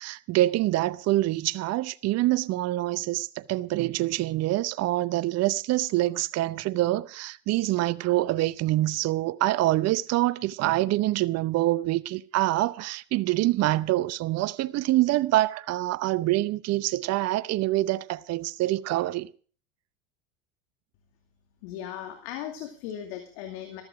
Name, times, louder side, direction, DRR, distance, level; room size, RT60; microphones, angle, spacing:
voice 1, 0.0-19.3, right 16 dB, 50° right, 0.7 m, -25 dB
voice 2, 21.6-23.8, left 10 dB, 75° left, 2.4 m, -37 dB
14.5 x 13.5 x 5.1 m
supercardioid pair, 90°, 32 cm